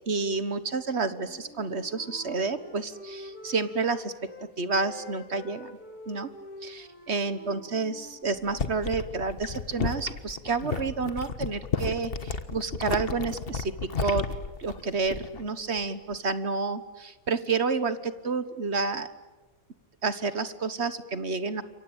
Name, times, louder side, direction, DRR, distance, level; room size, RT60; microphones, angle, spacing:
voice 1, 0.1-4.1 4.6-5.8 6.1-6.3 6.6-13.7 14.0-14.2 14.6-19.1 20.0-21.6, right 4 dB, 50° right, 13 dB, 1.5 m, -30 dB
Wind instrument woodwind instrument, 1.1-4.5 4.8-8.7, left 2 dB, 90° left, 4.3 m, -46 dB
sound 1, 8.3-15.5 15.8-16.1, left 5 dB, 40° left, 1.5 m, -33 dB
28.0 x 24.0 x 8.9 m, 1.1 s
omnidirectional pair, 1.5 m